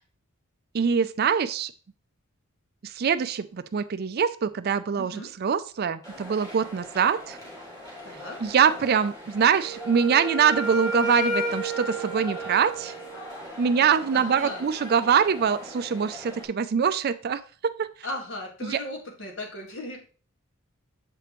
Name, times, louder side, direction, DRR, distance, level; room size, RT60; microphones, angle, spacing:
voice 1, 0.7-1.7 2.8-7.4 8.4-12.9 13.6-17.9 18.6-18.8, right 7 dB, 50° right, 13 dB, 0.4 m, -24 dB
voice 2, 5.0-5.3 8.0-8.4 14.1-14.6 18.0-20.0, left 1 dB, 60° left, 1 dB, 1.7 m, -37 dB
sound 1, 6.0-16.5, left 1 dB, 15° left, 2.4 m, -42 dB
Wind instrument woodwind instrument, 9.6-13.4, equal, 80° left, 2.0 m, -31 dB
7.6 x 5.0 x 3.0 m, 0.39 s
head